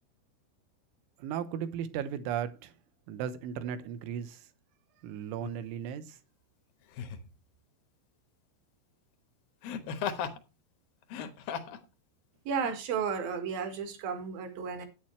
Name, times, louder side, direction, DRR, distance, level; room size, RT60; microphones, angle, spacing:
voice 1, 1.2-2.7 3.1-4.5 5.0-6.2, right 9 dB, 75° right, 3.2 m, -36 dB
Laughter, 5.4-5.6 6.9-7.3 9.6-10.4 11.0-11.8 12.6-12.7, left 7 dB, 75° left, 2.1 m, -36 dB
voice 2, 12.5-14.9, right 6 dB, 60° right, 2.9 m, -33 dB
11.5 x 9.2 x 3.2 m
omnidirectional pair, 5.9 m